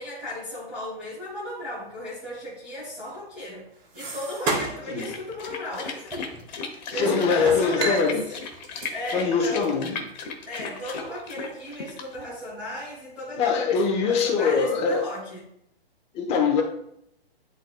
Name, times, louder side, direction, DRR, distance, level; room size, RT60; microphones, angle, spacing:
voice 1, 0.0-3.6 3.9-6.4 6.6-8.1 8.9-10.0 10.4-15.4, left 1 dB, 5° right, 2.4 m, -35 dB
sound 1, 3.0-5.0 5.3-5.5 6.1-6.9 7.3-9.8 10.3-10.4 10.7-10.8 11.5-11.7 12.1-12.8 13.2-13.9, right 2 dB, 25° right, 2.5 m, -35 dB
sound 2, 5.0-12.3, left 5 dB, 45° left, 1.4 m, -36 dB
voice 2, 6.9-8.2 9.1-10.0 13.4-15.1 16.1-16.6, left 5 dB, 20° left, 1.0 m, -23 dB
sound 3, 7.8-11.2, right 6 dB, 75° right, 1.1 m, -37 dB
11.0 x 4.0 x 2.3 m
hypercardioid pair, 145°, 31 cm